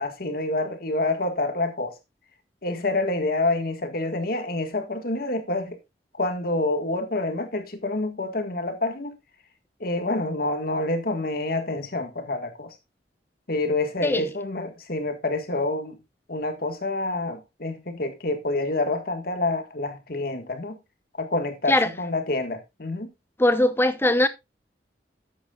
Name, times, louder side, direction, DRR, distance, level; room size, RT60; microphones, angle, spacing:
voice 1, 0.0-1.9 2.6-5.8 6.1-9.1 9.8-12.7 13.5-16.0 16.3-20.8 21.2-23.1, left 2 dB, 60° left, 1.8 m, -27 dB
voice 2, 23.4-24.3, left 1 dB, 15° left, 0.8 m, -20 dB
12.5 x 8.6 x 2.4 m
head